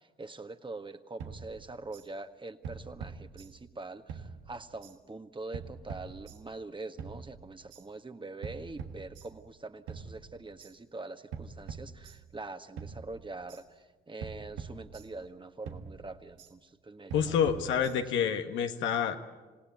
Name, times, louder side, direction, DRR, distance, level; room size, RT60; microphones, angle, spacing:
voice 1, 0.2-13.6 14.1-17.4 17.8-18.2, right 3 dB, 25° right, 8 dB, 1.6 m, -44 dB
sound 1, 1.2-2.1 2.6-3.8 4.1-5.0 5.5-6.6 7.0-7.8 8.4-9.6 9.9-10.7 11.3-12.5 12.8-13.6 14.2-15.4 15.7-16.5 17.1-18.3, right 5 dB, 85° right, 1.6 m, -44 dB
voice 2, 17.1-19.2, left 8 dB, 80° left, 6 dB, 1.6 m, -28 dB
27.5 x 17.5 x 9.3 m, 1.3 s
supercardioid pair, 60°, 19 cm